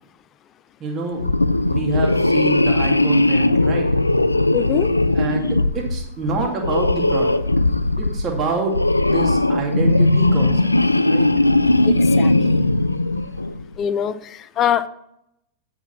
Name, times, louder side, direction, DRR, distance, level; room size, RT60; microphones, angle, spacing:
voice 1, 0.8-1.2 1.6-3.9 5.1-7.4 8.0-8.8 9.0-10.7 11.1-11.3, right 4 dB, 30° right, 0 dB, 2.4 m, -27 dB
sound 1, 1.2-13.6, left 2 dB, 85° left, 0.3 m, -18 dB
voice 2, 4.5-4.9 11.8-12.3 13.8-14.9, left 9 dB, 30° left, 15 dB, 0.6 m, -23 dB
9.1 x 6.1 x 5.7 m, 0.79 s
figure-of-eight pair, 90°, 0 cm